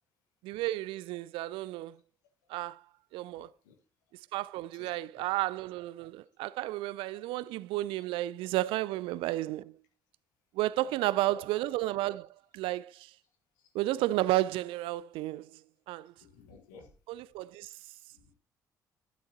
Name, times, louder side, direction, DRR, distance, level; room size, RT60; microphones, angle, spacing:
voice 1, 0.4-2.0 2.5-2.8 3.1-3.5 4.3-9.8 10.5-13.1 13.7-15.6 15.9-16.1 17.1-17.7, right 16 dB, 65° right, 0.4 m, -32 dB
voice 2, 3.4-3.7 4.8-5.3 10.8-10.9 11.2-11.4 16.2-16.9 18.1-18.3, left 4 dB, 75° left, 1.5 m, -52 dB
12.0 x 9.6 x 2.9 m
figure-of-eight pair, 45°, 10 cm